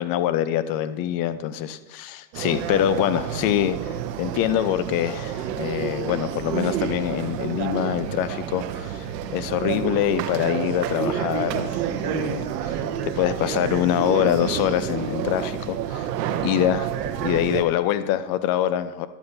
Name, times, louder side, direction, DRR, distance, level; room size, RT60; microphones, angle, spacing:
voice 1, 0.0-9.0 9.3-12.8 13.0-16.1 16.4-16.9 17.2-19.1, left 11 dB, 45° left, 13 dB, 0.7 m, -25 dB
sound 1, 2.3-17.6, right 9 dB, 75° right, 0.8 m, -29 dB
11.5 x 8.0 x 2.7 m, 1.2 s
hypercardioid pair, 85°, 48 cm